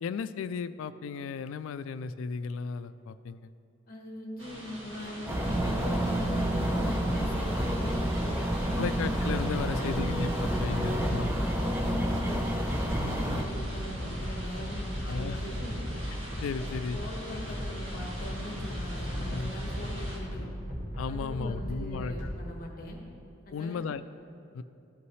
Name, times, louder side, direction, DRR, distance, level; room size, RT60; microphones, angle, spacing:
voice 1, 0.0-3.5 8.8-11.3 13.0-13.4 15.0-15.4 16.4-17.0 19.3-19.5 21.0-22.3 23.5-24.0 24.5-24.6, left 5 dB, 70° left, 14 dB, 0.3 m, -35 dB
voice 2, 3.9-8.9 9.6-12.4 12.7-15.8 16.6-20.5 21.1-23.0 23.4-23.8, equal, 45° left, 0 dB, 1.1 m, -42 dB
sound 1, 4.4-20.2, equal, 70° right, 1.6 m, -43 dB
sound 2, 5.3-13.4, right 1 dB, 10° right, 0.5 m, -30 dB
sound 3, 5.3-22.3, equal, 55° right, 1.9 m, -36 dB
13.5 x 5.6 x 3.2 m, 2.7 s
head